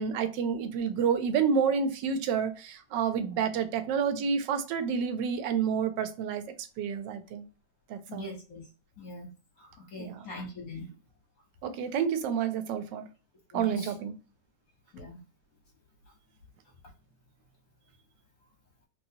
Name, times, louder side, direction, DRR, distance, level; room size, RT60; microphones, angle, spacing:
voice 1, 0.0-6.4 6.8-7.4 7.9-8.4 10.0-10.3 11.6-13.1 13.5-14.1, right 6 dB, 75° right, 1.1 m, -29 dB
voice 2, 8.1-8.6 9.0-9.3 9.6-10.9 13.5-13.9 14.9-15.2, left 1 dB, 60° left, 1.0 m, -42 dB
3.0 x 2.9 x 2.6 m
omnidirectional pair, 2.2 m